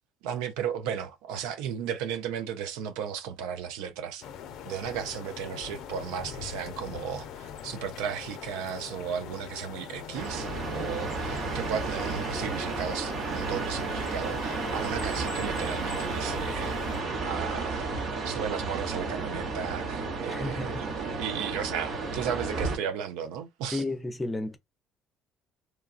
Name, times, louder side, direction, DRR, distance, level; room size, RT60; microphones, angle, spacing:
voice 1, 0.2-4.2 4.7-16.8 17.2-17.9 18.2-23.8, right 8 dB, 80° right, 0.5 m, -35 dB
sound 1, 4.2-17.0, left 8 dB, 70° left, 0.4 m, -42 dB
sound 2, 10.1-22.8, right 3 dB, 60° right, 1.0 m, -32 dB
voice 2, 20.3-20.8 23.7-24.6, left 2 dB, 20° left, 0.6 m, -32 dB
3.0 x 2.3 x 2.3 m
hypercardioid pair, 65°, 0 cm